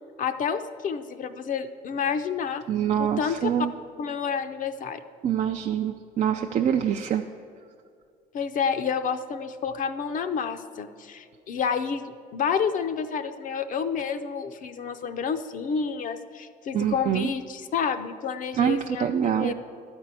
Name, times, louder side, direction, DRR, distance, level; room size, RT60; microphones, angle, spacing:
voice 1, 0.2-2.6 3.0-3.4 4.0-5.0 8.3-19.5, left 6 dB, 50° left, 9 dB, 0.5 m, -29 dB
voice 2, 2.7-3.7 5.2-7.2 16.7-17.3 18.6-19.5, right 9 dB, 45° right, 4 dB, 0.4 m, -25 dB
12.0 x 4.5 x 8.2 m, 2.2 s
cardioid pair, 110°, 17 cm